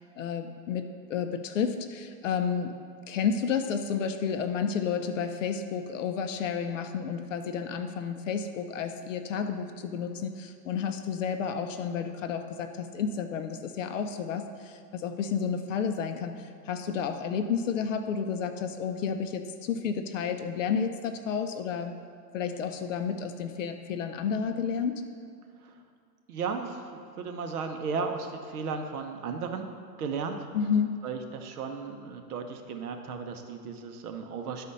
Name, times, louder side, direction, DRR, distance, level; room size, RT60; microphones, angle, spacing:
voice 1, 0.2-2.7 3.1-21.9 22.3-25.0 30.5-31.0, left 6 dB, 50° left, 7 dB, 0.6 m, -31 dB
voice 2, 26.3-29.7 30.0-30.5 31.0-34.6, right 5 dB, 60° right, 5 dB, 1.0 m, -35 dB
11.5 x 4.2 x 5.4 m, 2.3 s
supercardioid pair, 165°, 50 cm